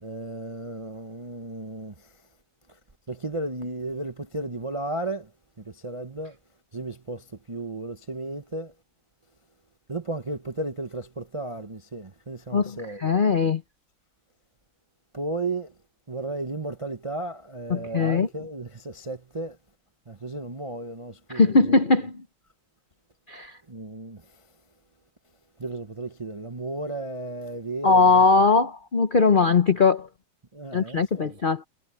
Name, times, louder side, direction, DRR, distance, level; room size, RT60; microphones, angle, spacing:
voice 1, 0.0-2.1 2.7-2.8 3.1-5.3 5.6-6.4 6.7-8.7 9.9-13.1 15.1-15.7 16.1-19.6 20.1-21.8 23.7-24.5 25.6-28.2 30.5-31.3, right 2 dB, 35° right, 0.4 m, -34 dB
voice 2, 12.5-13.6 17.7-18.3 21.3-22.2 23.3-23.6 27.8-30.1 30.7-31.6, left 4 dB, 60° left, 0.5 m, -20 dB
omnidirectional pair, 2.2 m